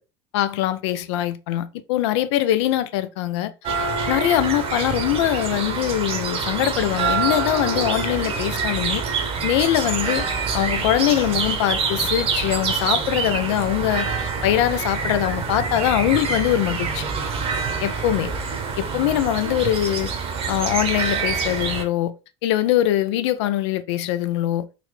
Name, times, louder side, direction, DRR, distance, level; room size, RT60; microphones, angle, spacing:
voice 1, 0.3-3.5 4.1-9.0 9.4-10.3 10.5-17.1 17.8-18.3 18.8-20.1 20.5-22.1 22.4-24.7, left 13 dB, 75° left, 0.4 m, -22 dB
sound 1, 3.6-21.8, right 5 dB, 40° right, 0.8 m, -26 dB
3.9 x 2.2 x 3.1 m
hypercardioid pair, 80°, 15 cm